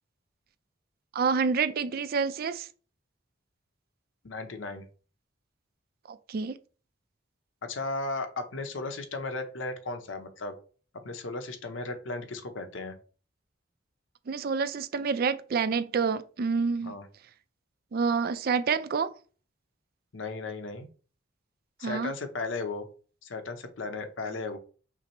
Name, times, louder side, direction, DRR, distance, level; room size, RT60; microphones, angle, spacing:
voice 1, 1.1-2.7 6.3-6.5 14.3-16.9 17.9-19.1 21.8-22.1, right 5 dB, 50° right, 0.4 m, -28 dB
voice 2, 4.2-4.8 7.7-10.5 11.0-12.9 16.8-17.1 20.1-20.9 21.8-22.9 23.2-24.6, left 3 dB, 90° left, 0.8 m, -35 dB
5.8 x 2.0 x 4.4 m
head